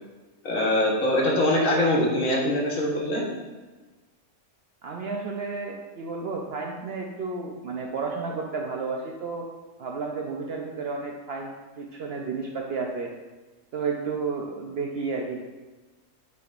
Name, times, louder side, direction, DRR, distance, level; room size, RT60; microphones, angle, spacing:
voice 1, 0.4-3.2, left 1 dB, 70° left, -3 dB, 1.6 m, -23 dB
voice 2, 4.8-9.5 9.8-13.1 13.7-15.4, right 4 dB, 60° right, 1 dB, 0.7 m, -32 dB
8.2 x 4.7 x 2.5 m, 1.2 s
omnidirectional pair, 1.5 m